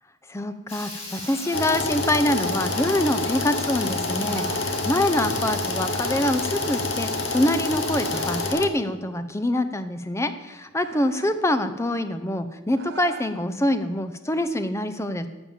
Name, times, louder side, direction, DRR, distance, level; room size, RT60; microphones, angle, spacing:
voice 1, 0.3-15.3, left 1 dB, 15° left, 10 dB, 0.6 m, -25 dB
Water tap faucet / Liquid, 0.7-8.5, left 2 dB, 30° left, 2.8 m, -37 dB
sound 1, 1.1-1.7 2.6-3.2 4.2-4.7 5.9-6.5 7.9-8.5 10.8-11.4 12.7-13.4, right 4 dB, 55° right, 1.2 m, -41 dB
sound 2, 1.5-8.7, left 3 dB, 55° left, 0.9 m, -28 dB
12.5 x 7.1 x 7.2 m, 1.2 s
head